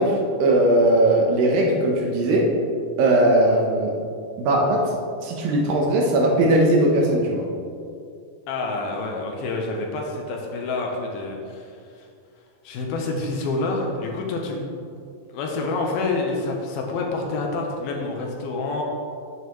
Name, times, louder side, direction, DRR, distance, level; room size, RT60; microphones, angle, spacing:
voice 1, 0.0-2.5 3.0-3.9 4.4-4.9 5.2-7.4, right 1 dB, 75° right, 0 dB, 2.5 m, -19 dB
voice 2, 8.5-12.1 12.6-14.7 15.3-18.8, left 3 dB, 80° left, 1 dB, 2.7 m, -28 dB
9.3 x 8.8 x 3.1 m, 2.4 s
omnidirectional pair, 4.5 m